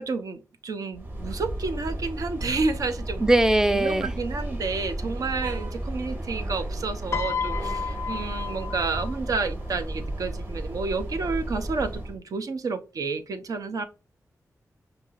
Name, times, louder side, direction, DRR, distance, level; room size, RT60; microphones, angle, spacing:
voice 1, 0.0-3.2 3.7-13.8, right 4 dB, 70° right, 0.8 m, -30 dB
sound 1, 0.9-12.2, right 1 dB, 30° right, 1.7 m, -33 dB
voice 2, 3.2-4.1, right 1 dB, 10° right, 0.4 m, -20 dB
Piano, 7.1-9.5 10.5-10.8, left 6 dB, 50° left, 0.4 m, -32 dB
5.5 x 2.9 x 2.5 m
wide cardioid pair, 115°, 6 cm